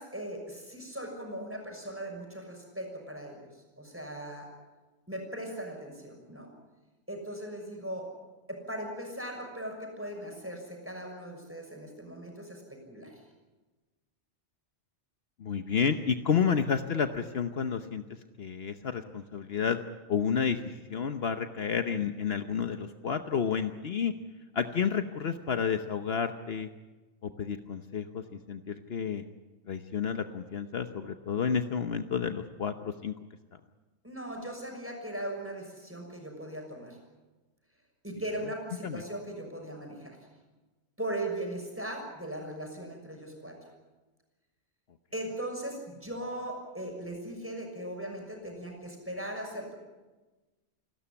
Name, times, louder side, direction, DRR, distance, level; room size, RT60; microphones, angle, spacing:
voice 1, 0.0-3.5 3.8-4.5 5.1-6.5 7.1-8.1 8.5-13.1 34.0-37.0 38.0-40.2 41.0-43.6 45.1-49.7, right 1 dB, 10° right, 1 dB, 6.2 m, -39 dB
voice 2, 15.4-18.0 18.4-19.8 20.1-24.1 24.5-26.7 27.2-29.2 29.7-33.1 38.8-39.0, left 7 dB, 60° left, 8 dB, 1.1 m, -30 dB
28.5 x 13.0 x 9.9 m, 1.2 s
omnidirectional pair, 1.2 m